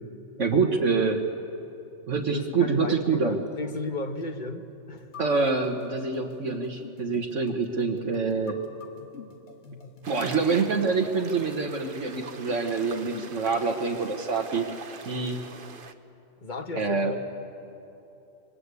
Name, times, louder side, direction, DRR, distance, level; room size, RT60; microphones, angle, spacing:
voice 1, 0.4-1.3 2.1-3.4 5.2-8.6 10.1-14.7 15.1-15.4 16.7-17.1, right 4 dB, 75° right, 2 dB, 1.7 m, -26 dB
voice 2, 2.3-5.1 16.4-17.2, left 2 dB, 40° left, 7 dB, 1.5 m, -35 dB
sound 1, 5.0-13.5, left 5 dB, 60° left, 1.7 m, -47 dB
sound 2, 10.0-15.9, right 5 dB, 50° right, 1.2 m, -44 dB
26.0 x 23.0 x 8.3 m, 2.9 s
omnidirectional pair, 1.3 m